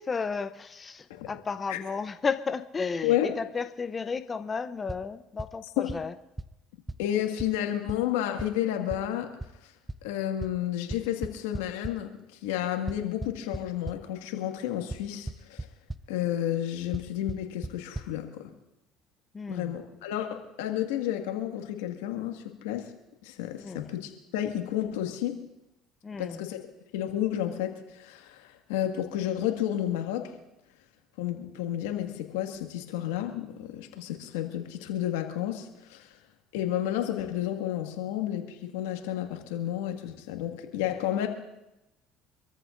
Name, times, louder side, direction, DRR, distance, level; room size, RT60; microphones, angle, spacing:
voice 1, 0.0-6.1 19.3-19.7 23.6-23.9 26.0-26.4, left 5 dB, 30° left, 11 dB, 0.6 m, -33 dB
sound 1, 4.9-5.0 5.4-5.5 5.9-6.0 6.4-6.5 6.9-7.0 7.4-7.5 7.9-8.0 8.4-8.5 8.9-9.0 9.4-9.5 9.9-10.0 10.4-10.5 10.9-11.9 12.9-14.0 14.9-15.0 15.3-15.6 15.9-16.0 16.9-17.0 17.3-17.4 17.6-17.7 17.9-18.1, right 2 dB, 10° right, 0.6 m, -34 dB
voice 2, 7.0-9.3 9.6-9.7 10.0-12.1 12.4-15.7 16.1-18.5 19.5-22.9 23.2-25.4 26.2-26.7 26.9-30.3 31.2-36.1 36.5-41.3, left 11 dB, 85° left, 4 dB, 1.8 m, -31 dB
26.5 x 14.0 x 2.6 m, 0.93 s
supercardioid pair, 80°, 0 cm